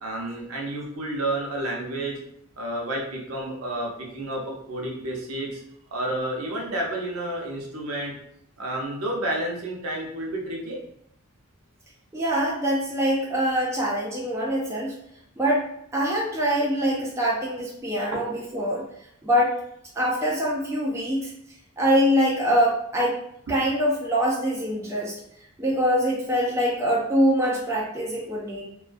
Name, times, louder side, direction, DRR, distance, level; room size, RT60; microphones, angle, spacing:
voice 1, 0.0-2.2 2.6-4.4 4.7-5.6 5.9-8.1 8.6-10.8 18.1-18.2 23.5-23.6, right 1 dB, 80° right, -1 dB, 0.6 m, -30 dB
voice 2, 12.1-14.9 15.4-18.8 19.2-19.6 20.0-21.3 21.8-23.2 23.5-25.2 25.6-28.6, equal, 15° right, -5 dB, 0.3 m, -24 dB
2.3 x 2.2 x 2.4 m, 0.73 s
head